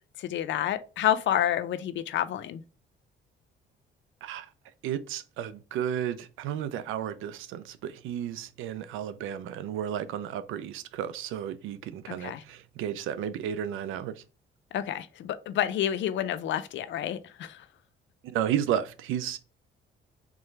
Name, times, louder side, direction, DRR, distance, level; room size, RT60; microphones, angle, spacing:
voice 1, 0.2-2.6 12.1-12.4 14.7-17.7, left 11 dB, 70° left, 0.5 m, -29 dB
voice 2, 4.8-14.2 18.2-19.4, right 10 dB, 90° right, 0.5 m, -33 dB
3.7 x 3.1 x 3.2 m
cardioid pair, 90°, 20 cm